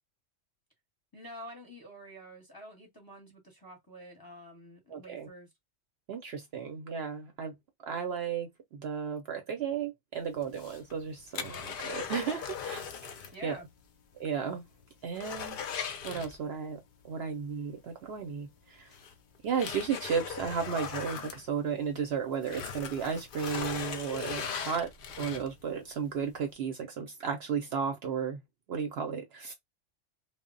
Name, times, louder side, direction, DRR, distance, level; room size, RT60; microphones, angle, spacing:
voice 1, 1.1-5.5 13.3-13.7, equal, 20° left, 0.7 m, -48 dB
voice 2, 4.9-5.3 6.1-7.6 7.8-12.9 13.4-13.6 14.2-14.6 15.0-15.6 16.0-16.8 17.0-18.9 19.4-24.9 25.2-28.4 28.7-29.5, right 6 dB, 65° right, 0.7 m, -34 dB
sound 1, 10.4-13.4 13.7-13.8 14.3-14.4 14.7-16.8 18.2-18.3 18.9-22.0 22.4-25.7 26.2-26.3, left 7 dB, 60° left, 0.6 m, -39 dB
2.1 x 2.0 x 3.6 m
omnidirectional pair, 1.3 m